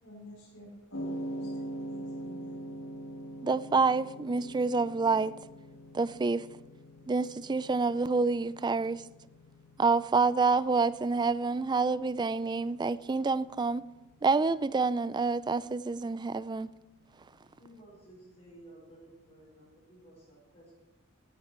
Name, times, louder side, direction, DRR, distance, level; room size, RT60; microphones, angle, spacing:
voice 1, 0.0-2.6, equal, 60° left, 4.5 m, -51 dB
sound 1, 0.9-19.2, right 1 dB, 75° left, 1.7 m, -45 dB
voice 2, 3.4-5.3 5.9-6.5 7.1-9.0 9.8-13.8 14.2-16.7, right 4 dB, 20° right, 0.3 m, -27 dB
voice 3, 17.6-20.7, right 1 dB, 30° left, 5.3 m, -54 dB
15.5 x 9.6 x 4.5 m
head